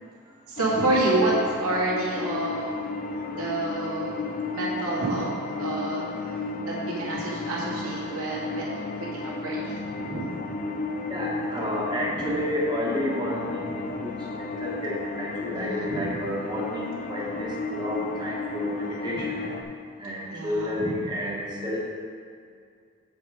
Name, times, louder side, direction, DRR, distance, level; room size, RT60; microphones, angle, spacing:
voice 1, 0.5-1.3 1.6-2.9 3.3-4.2 4.5-5.3 5.6-6.0 7.0-10.4 12.1-12.4 15.5-16.1 19.2-19.3 20.3-21.0, right 2 dB, 85° right, -6 dB, 2.0 m, -29 dB
sound 1, 0.6-19.6, left 3 dB, 40° left, 0.5 m, -33 dB
voice 2, 11.1-19.4 20.0-21.9, left 1 dB, 20° right, -5 dB, 1.3 m, -31 dB
7.8 x 5.2 x 4.9 m, 2.2 s
head